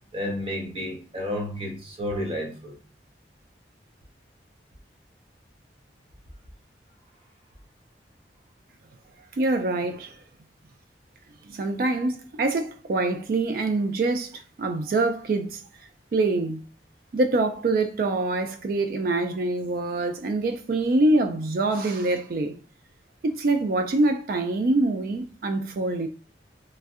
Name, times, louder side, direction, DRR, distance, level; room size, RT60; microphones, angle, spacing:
voice 1, 0.1-2.7, left 1 dB, 30° right, 0.7 m, -31 dB
voice 2, 9.3-10.2 11.5-15.6 16.1-16.6 17.1-22.6 23.2-26.1, right 2 dB, 50° right, 0.3 m, -25 dB
3.1 x 2.6 x 2.4 m
head